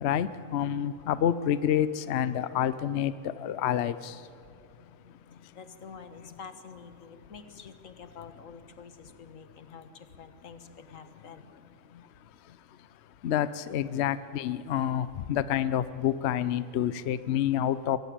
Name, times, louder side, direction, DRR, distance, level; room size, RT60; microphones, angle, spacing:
voice 1, 0.0-4.1 13.2-18.0, left 10 dB, 65° left, 15 dB, 0.8 m, -28 dB
voice 2, 5.3-11.5, left 5 dB, 90° left, 10 dB, 1.7 m, -48 dB
22.5 x 16.0 x 8.8 m, 2.8 s
omnidirectional pair, 1.3 m